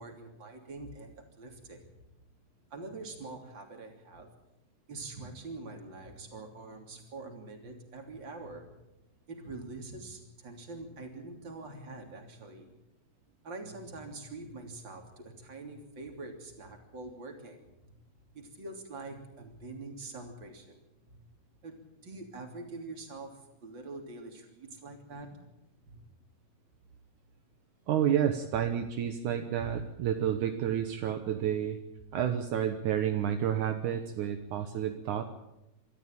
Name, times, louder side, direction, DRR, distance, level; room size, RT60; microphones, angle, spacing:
voice 1, 0.0-1.9 2.7-4.3 4.9-8.7 9.3-12.7 13.4-17.9 18.3-20.8 21.1-21.2 21.6-25.3 25.8-26.0 34.5-34.7, right 3 dB, 35° right, 4 dB, 3.6 m, -45 dB
voice 2, 27.9-31.8 32.1-35.2, right 9 dB, 75° right, 6 dB, 2.5 m, -30 dB
24.0 x 13.5 x 8.9 m, 0.90 s
omnidirectional pair, 3.7 m